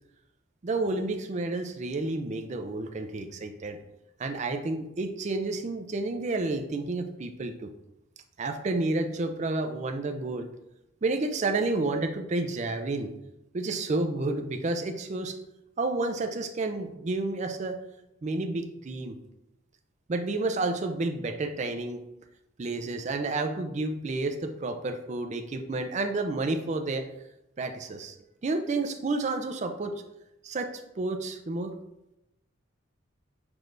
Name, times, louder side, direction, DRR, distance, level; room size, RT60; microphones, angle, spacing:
voice 1, 0.6-3.8 4.2-7.7 8.4-10.5 11.0-13.1 13.5-15.4 15.8-17.8 18.2-19.2 20.1-22.0 22.6-27.1 27.6-28.2 28.4-30.0 30.4-31.8, right 2 dB, 35° right, 6 dB, 0.4 m, -30 dB
6.0 x 3.3 x 2.5 m, 0.88 s
head